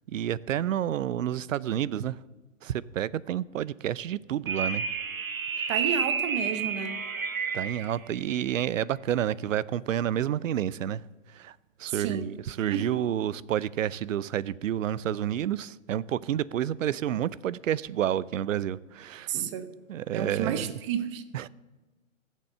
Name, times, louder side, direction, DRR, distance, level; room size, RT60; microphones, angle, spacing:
voice 1, 0.0-2.2 2.6-4.8 5.6-5.7 7.5-11.0 11.3-19.3 19.9-20.7 21.3-21.5, right 10 dB, 70° right, 0.6 m, -30 dB
sound 1, 4.5-7.9, right 6 dB, 85° right, 1.6 m, -30 dB
voice 2, 5.7-7.0 11.9-12.3 12.7-13.0 19.3-19.7 20.1-21.2, right 8 dB, 20° right, 0.7 m, -31 dB
15.0 x 7.5 x 6.7 m
hypercardioid pair, 145°, 40 cm